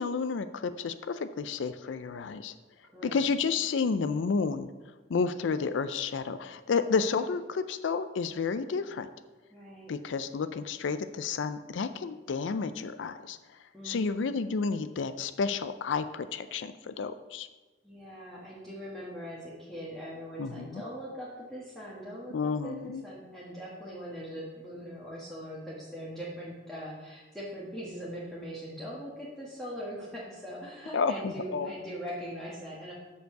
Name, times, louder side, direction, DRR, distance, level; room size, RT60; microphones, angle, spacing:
voice 1, 0.0-2.5 3.0-4.7 5.1-9.1 9.9-13.4 13.8-17.5 20.4-20.8 22.3-23.0 30.9-31.7, left 5 dB, 80° left, 12 dB, 0.4 m, -31 dB
voice 2, 9.5-9.9 13.7-14.2 17.8-32.9, equal, 5° left, -7 dB, 1.4 m, -41 dB
6.8 x 5.2 x 6.5 m, 1.2 s
head